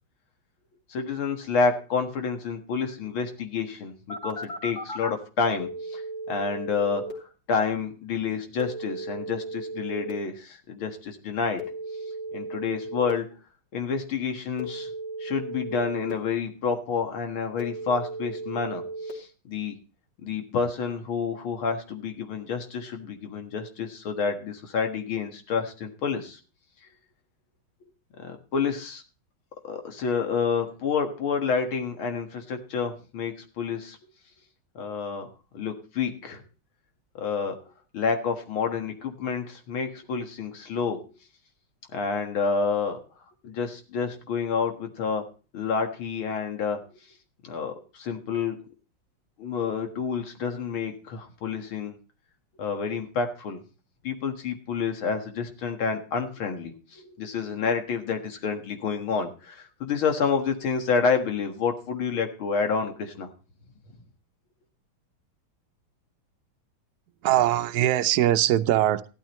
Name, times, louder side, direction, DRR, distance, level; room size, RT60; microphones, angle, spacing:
voice 1, 0.9-6.0 6.3-7.1 7.5-11.6 12.3-13.3 13.7-14.9 15.2-18.8 19.1-19.8 20.2-26.4 28.2-29.0 29.6-34.0 34.8-35.3 35.5-36.4 37.2-37.6 37.9-41.0 41.9-43.0 43.4-45.3 45.5-46.8 47.4-48.6 49.4-52.0 52.6-53.6 54.0-63.3, left 5 dB, 75° left, 5 dB, 2.4 m, -29 dB
Telephone, 4.1-5.1 5.6-7.1 8.6-10.1 11.6-13.1 14.6-16.1 17.6-19.1, right 2 dB, 50° left, 3.6 m, -35 dB
voice 2, 67.2-69.1, right 12 dB, 65° right, 10 dB, 1.0 m, -22 dB
15.0 x 12.0 x 3.1 m, 0.34 s
omnidirectional pair, 2.3 m